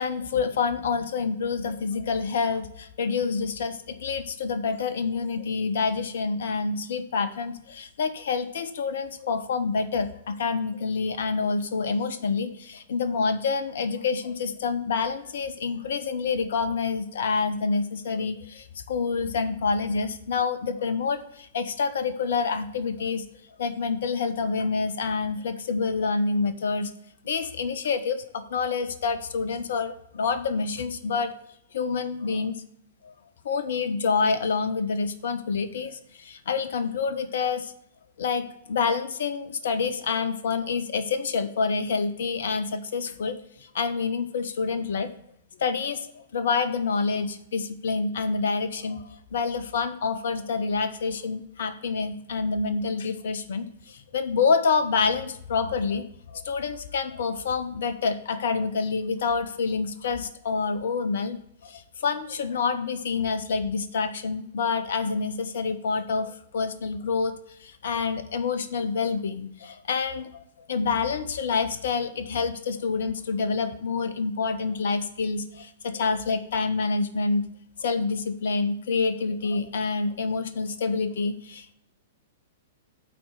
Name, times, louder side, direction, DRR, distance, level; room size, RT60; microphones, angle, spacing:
voice 1, 0.0-23.2 23.6-26.9 27.2-31.3 31.7-32.6 33.0-33.1 33.4-37.7 38.2-45.1 45.6-67.3 67.6-77.5 77.8-81.7, left 5 dB, 55° left, 12 dB, 0.6 m, -27 dB
8.6 x 4.2 x 6.4 m, 0.74 s
figure-of-eight pair, 105°, 0 cm